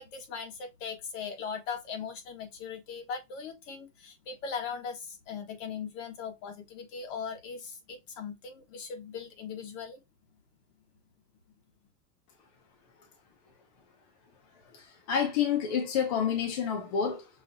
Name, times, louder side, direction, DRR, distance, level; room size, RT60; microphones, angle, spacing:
voice 1, 0.0-10.0, left 6 dB, 55° left, 1.3 m, -39 dB
voice 2, 14.7-17.3, left 7 dB, 25° left, 0.4 m, -29 dB
5.6 x 2.6 x 2.5 m
supercardioid pair, 175°, 46 cm